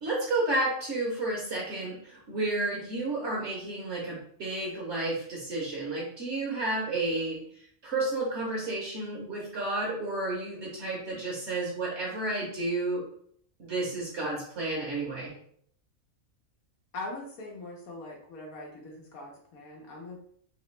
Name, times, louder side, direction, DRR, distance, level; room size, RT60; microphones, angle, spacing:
voice 1, 0.0-7.4 7.8-13.0 13.6-15.3, right 2 dB, 60° right, -3 dB, 1.1 m, -31 dB
voice 2, 16.9-20.2, left 2 dB, 85° left, -2 dB, 1.2 m, -41 dB
3.3 x 2.8 x 3.1 m, 0.64 s
omnidirectional pair, 1.4 m